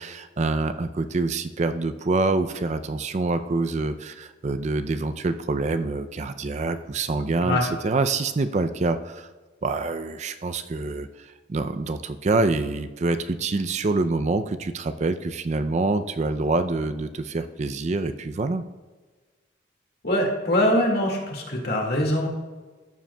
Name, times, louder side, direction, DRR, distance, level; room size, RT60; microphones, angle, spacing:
voice 1, 0.0-9.3 9.6-18.6, right 3 dB, 35° right, 10 dB, 0.4 m, -26 dB
voice 2, 20.0-22.3, left 1 dB, 55° left, 0 dB, 2.0 m, -23 dB
14.0 x 7.5 x 2.2 m, 1.3 s
head